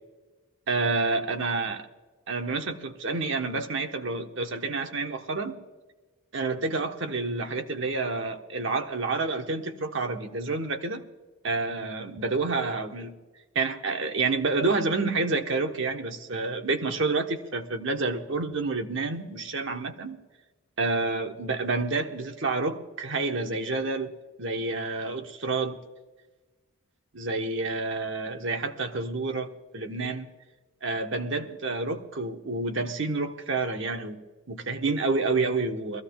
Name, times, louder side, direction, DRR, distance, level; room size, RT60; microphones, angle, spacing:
voice 1, 0.7-1.9 2.3-5.6 6.3-11.0 11.4-13.2 13.5-20.2 20.8-24.1 24.4-25.8 27.1-30.3 30.8-36.0, right 3 dB, 60° right, 1.0 m, -29 dB
22.5 x 15.0 x 2.3 m
head